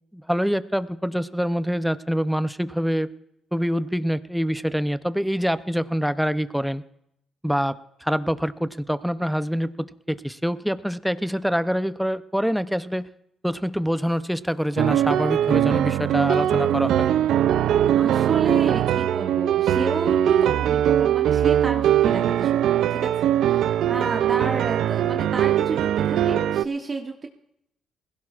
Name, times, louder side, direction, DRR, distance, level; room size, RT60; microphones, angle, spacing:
voice 1, 0.1-3.1 3.5-6.8 7.4-13.1 13.4-17.1, equal, ahead, 13 dB, 0.6 m, -25 dB
sound 1, 14.8-26.6, right 11 dB, 80° right, 0.4 m, -21 dB
voice 2, 17.9-27.3, right 3 dB, 35° right, 3 dB, 1.1 m, -31 dB
20.5 x 16.0 x 2.5 m, 0.77 s
cardioid pair, 90°, 0 cm